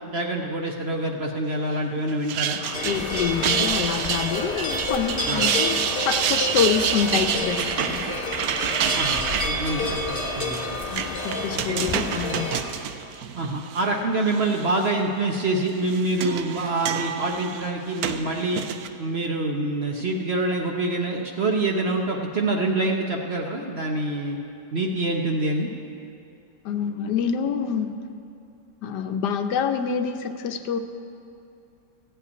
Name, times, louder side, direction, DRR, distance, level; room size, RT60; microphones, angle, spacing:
voice 1, 0.1-2.6 5.3-5.4 8.9-10.8 11.7-11.8 13.3-18.6 19.0-24.4 24.7-25.7, right 2 dB, 50° right, 1 dB, 0.9 m, -26 dB
sound 1, 2.1-13.8 14.3-14.9 15.7-18.9, right 9 dB, 70° right, 1.0 m, -28 dB
voice 2, 2.6-8.2 10.9-12.6 26.6-28.0 28.8-30.8, left 7 dB, 75° left, 8 dB, 1.2 m, -27 dB
sound 2, 2.7-12.6, left 2 dB, 35° left, 1.4 m, -29 dB
15.0 x 5.6 x 9.5 m, 2.7 s
omnidirectional pair, 1.8 m